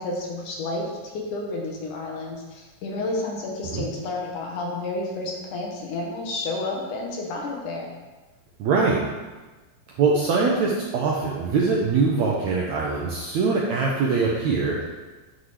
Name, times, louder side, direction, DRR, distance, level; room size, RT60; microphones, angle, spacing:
voice 1, 0.0-7.9, left 2 dB, 70° left, -1 dB, 2.4 m, -31 dB
voice 2, 8.6-9.0 10.0-14.8, right 4 dB, 75° right, -3 dB, 1.7 m, -22 dB
9.3 x 6.0 x 3.3 m, 1.2 s
omnidirectional pair, 4.1 m